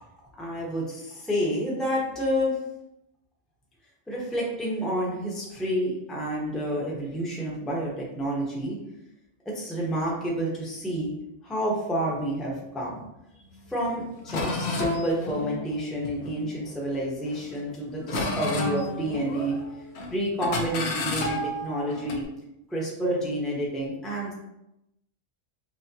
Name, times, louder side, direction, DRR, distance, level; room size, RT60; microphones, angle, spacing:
voice 1, 0.3-2.6 4.1-8.8 9.4-11.1 11.4-13.0 13.3-13.4 13.7-19.6 20.1-22.3 22.7-24.3, equal, ahead, -4 dB, 0.7 m, -29 dB
sound 1, 13.8-13.9 14.3-16.8 17.3-17.7 18.1-19.7 19.9-20.1 20.4-22.2, left 2 dB, 75° left, 1.0 m, -31 dB
6.1 x 2.1 x 2.7 m, 0.86 s
omnidirectional pair, 1.1 m